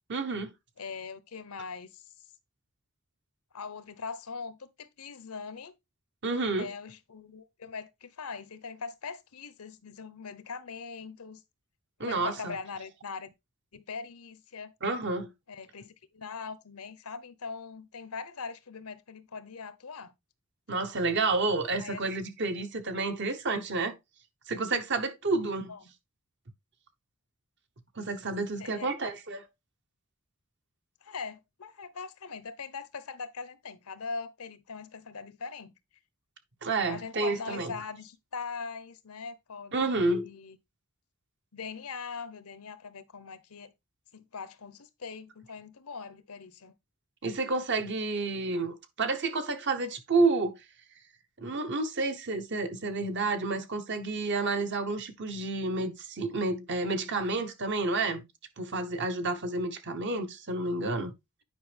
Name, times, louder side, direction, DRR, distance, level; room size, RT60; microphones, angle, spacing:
voice 1, 0.1-0.5 6.2-6.7 12.0-12.6 14.8-15.3 20.7-23.9 24.5-25.7 28.0-29.4 36.6-37.7 39.7-40.3 47.2-50.6 51.4-58.2 58.6-61.1, right 3 dB, 55° right, 1.0 m, -30 dB
voice 2, 0.8-2.0 3.5-5.7 6.6-11.4 12.0-13.3 13.7-14.7 15.5-20.1 20.7-20.8 21.8-22.1 25.7-25.9 28.6-29.1 31.0-35.7 36.9-40.6 41.5-43.7 44.1-46.8, left 5 dB, 80° left, 0.9 m, -41 dB
9.3 x 5.2 x 3.4 m
head